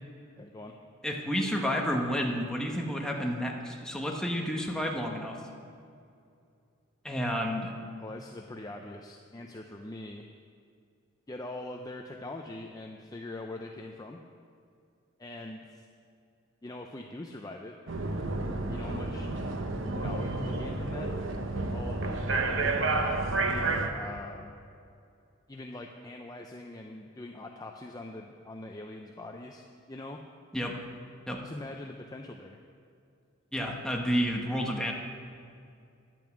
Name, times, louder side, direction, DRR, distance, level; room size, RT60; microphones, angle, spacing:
voice 1, 0.4-0.8 8.0-10.2 11.3-14.2 15.2-15.9 16.6-17.7 18.7-19.3 19.9-21.1 21.5-23.1 23.9-24.5 25.5-30.2 31.4-32.6, left 2 dB, 20° left, 2 dB, 0.5 m, -43 dB
voice 2, 1.0-5.4 7.0-7.7 30.5-30.7 31.3-31.4 33.5-34.9, equal, 5° left, 0 dB, 1.2 m, -30 dB
sound 1, 17.9-23.9, right 2 dB, 65° right, 0.9 m, -30 dB
10.5 x 9.2 x 7.3 m, 2.4 s
head